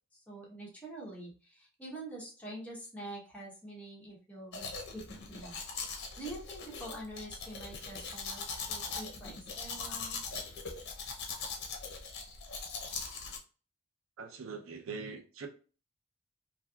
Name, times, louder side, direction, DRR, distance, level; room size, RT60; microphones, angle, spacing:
voice 1, 0.1-5.6 6.2-10.2, right 1 dB, 5° left, 1.0 m, -46 dB
Domestic sounds home sounds, 4.5-13.4, left 4 dB, 60° left, 0.6 m, -41 dB
voice 2, 14.2-15.5, right 5 dB, 90° right, 0.5 m, -42 dB
3.2 x 2.7 x 2.3 m
head